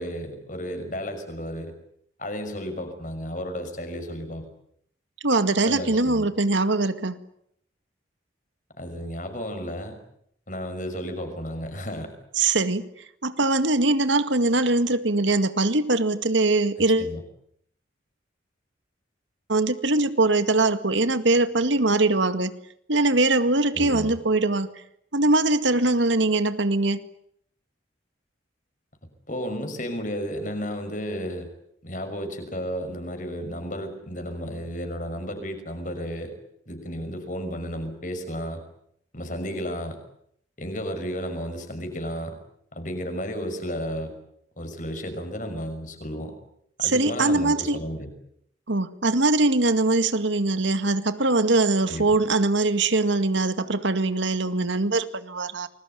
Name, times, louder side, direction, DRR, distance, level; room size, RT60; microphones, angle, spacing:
voice 1, 0.0-1.7 2.2-4.5 5.6-6.3 8.8-10.0 10.5-12.1 16.8-17.2 23.7-24.2 29.3-31.5 31.8-36.3 36.7-38.6 39.1-40.0 40.6-42.4 42.7-44.1 44.6-46.3 46.8-48.1 51.9-52.2, equal, 45° left, 7 dB, 6.0 m, -33 dB
voice 2, 5.2-7.2 12.4-12.9 13.2-17.1 19.5-22.5 22.9-24.7 25.1-27.0 46.8-47.8 48.7-55.7, right 2 dB, 80° right, 11 dB, 2.0 m, -22 dB
29.0 x 21.5 x 9.4 m, 0.73 s
head